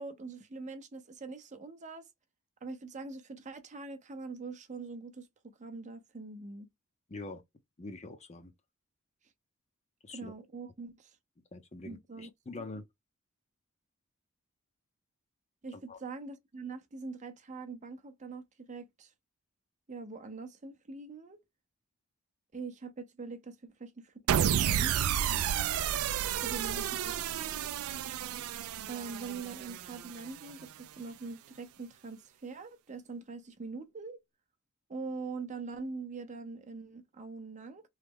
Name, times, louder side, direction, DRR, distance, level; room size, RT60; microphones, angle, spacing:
voice 1, 0.0-2.1 2.6-6.7 10.1-11.1 11.8-12.3 15.6-19.1 19.9-21.4 22.5-25.9 26.4-27.7 28.9-34.2 34.9-37.8, right 4 dB, 35° right, 0.6 m, -43 dB
voice 2, 7.1-7.4 7.8-8.5 10.0-10.3 11.5-12.8 15.7-16.0 26.4-26.5, left 2 dB, 30° left, 0.6 m, -44 dB
sound 1, 24.3-30.6, right 9 dB, 75° right, 0.3 m, -31 dB
3.1 x 2.0 x 3.5 m
head